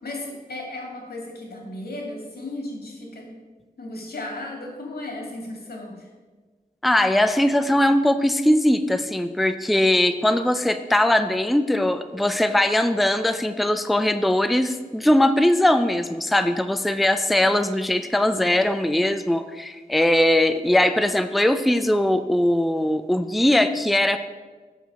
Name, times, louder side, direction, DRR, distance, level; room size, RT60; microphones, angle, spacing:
voice 1, 0.0-3.3 3.8-6.1, left 2 dB, 85° left, 0 dB, 2.3 m, -35 dB
voice 2, 6.8-24.2, left 1 dB, ahead, 10 dB, 0.4 m, -20 dB
8.1 x 6.3 x 6.1 m, 1.3 s
wide cardioid pair, 110°, 16 cm